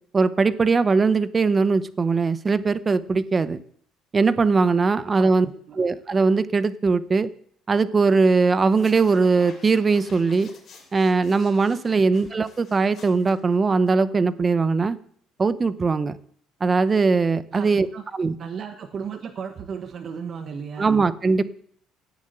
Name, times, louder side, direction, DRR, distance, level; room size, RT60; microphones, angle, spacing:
voice 1, 0.1-3.6 4.1-5.5 5.8-7.3 7.7-10.5 10.9-15.0 15.4-16.2 16.6-17.9 18.2-18.3 20.8-21.4, right 4 dB, 20° right, 15 dB, 0.8 m, -20 dB
voice 2, 5.1-5.8 11.9-12.0 17.5-18.0 18.4-21.0, right 6 dB, 35° right, 6 dB, 1.2 m, -35 dB
sound 1, 8.6-14.0, left 5 dB, 35° left, 6.2 m, -49 dB
17.0 x 7.3 x 9.0 m, 0.63 s
cardioid pair, 165°, 0 cm